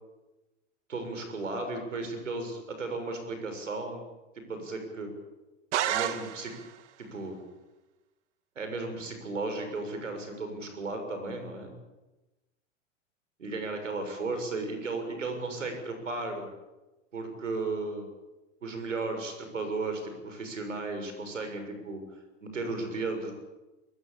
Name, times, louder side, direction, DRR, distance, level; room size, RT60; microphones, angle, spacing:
voice 1, 0.9-4.0 4.5-5.1 5.9-6.5 7.0-7.4 8.5-11.7 13.4-16.5 17.1-18.1 18.6-22.0 22.4-23.3, right 3 dB, 90° right, 6 dB, 6.8 m, -35 dB
sound 1, 5.7-6.8, right 11 dB, 65° right, 2.0 m, -30 dB
23.5 x 22.5 x 8.7 m, 1.1 s
hypercardioid pair, 95°, 36 cm